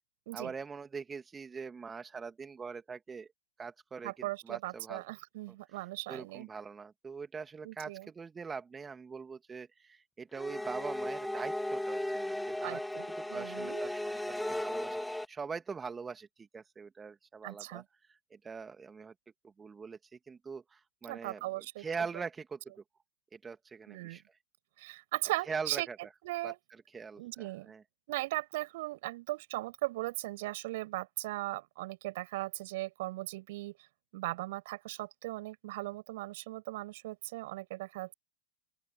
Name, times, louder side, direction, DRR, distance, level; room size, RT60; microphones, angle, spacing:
voice 1, 0.3-3.3 3.6-5.0 5.7-12.8 13.2-19.1 19.4-22.6 23.3-24.2 25.5-26.0 26.4-26.5 26.9-27.8, right 5 dB, 15° right, 2.0 m, -43 dB
voice 2, 4.0-6.5 7.6-8.1 12.6-13.8 17.4-17.8 21.1-21.8 23.9-24.2 24.8-26.6 27.2-27.7 28.1-33.8 34.1-38.1, right 19 dB, 50° right, 6.4 m, -38 dB
sound 1, 10.3-15.3, left 1 dB, 5° left, 2.2 m, -36 dB
open air
figure-of-eight pair, 90°, 0 cm